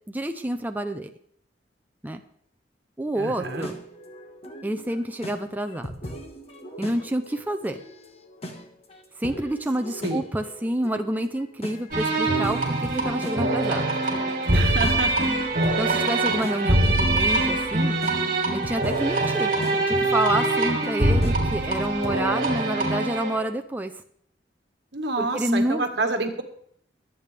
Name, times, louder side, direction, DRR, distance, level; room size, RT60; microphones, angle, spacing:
voice 1, 0.1-1.1 2.0-2.2 3.0-3.8 4.6-5.9 6.8-7.8 9.2-13.9 15.8-18.0 18.5-23.9 25.2-25.9, right 1 dB, 10° right, 5 dB, 0.6 m, -28 dB
voice 2, 3.2-3.7 10.0-10.2 14.5-15.3 24.9-26.4, right 3 dB, 70° right, 6 dB, 1.6 m, -28 dB
sound 1, 3.4-22.2, equal, 35° left, 1.5 m, -40 dB
sound 2, 11.9-23.4, right 2 dB, 55° right, 3.0 m, -23 dB
22.0 x 8.3 x 3.4 m, 0.65 s
head